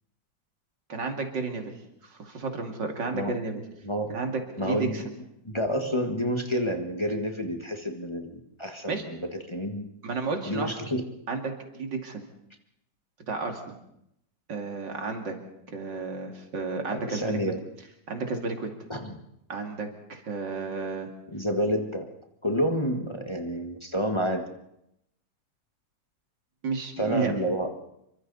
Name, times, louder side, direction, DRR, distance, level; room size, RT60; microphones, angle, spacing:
voice 1, 0.9-1.7 2.0-3.6 4.1-5.0 8.9-9.0 10.0-10.7 11.3-12.2 13.3-13.6 14.5-15.4 15.7-17.4 18.1-18.7 19.5-21.1 26.6-27.4, right 4 dB, 65° right, 3 dB, 3.2 m, -32 dB
voice 2, 3.8-4.1 4.6-5.1 5.4-9.9 10.4-11.0 16.9-17.6 18.9-19.2 21.3-22.1 22.4-24.4 27.0-27.7, equal, 15° left, 4 dB, 1.5 m, -29 dB
28.0 x 24.0 x 4.1 m, 0.80 s
omnidirectional pair, 2.1 m